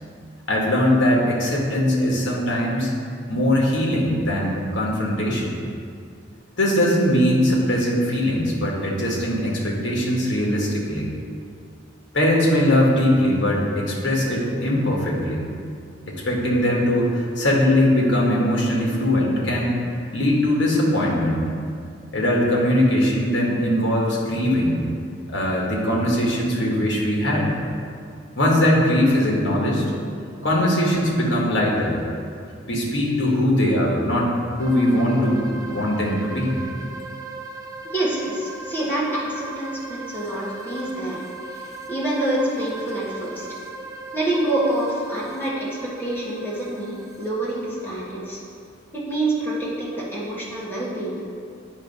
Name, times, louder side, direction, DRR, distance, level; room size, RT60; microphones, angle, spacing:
voice 1, 0.5-2.9 3.3-5.6 6.6-11.1 12.1-15.4 16.1-19.7 20.1-21.5 22.1-24.8 25.3-27.5 28.4-29.9 30.4-32.0 32.7-36.5, left 1 dB, 70° left, -2 dB, 1.3 m, -21 dB
sound 1, 34.6-48.2, right 3 dB, 20° right, 0.4 m, -38 dB
voice 2, 37.9-41.2 41.5-43.5 44.1-45.7 46.0-48.4 48.9-51.2, right 1 dB, 10° left, -7 dB, 1.3 m, -27 dB
8.8 x 3.1 x 5.4 m, 2.3 s
head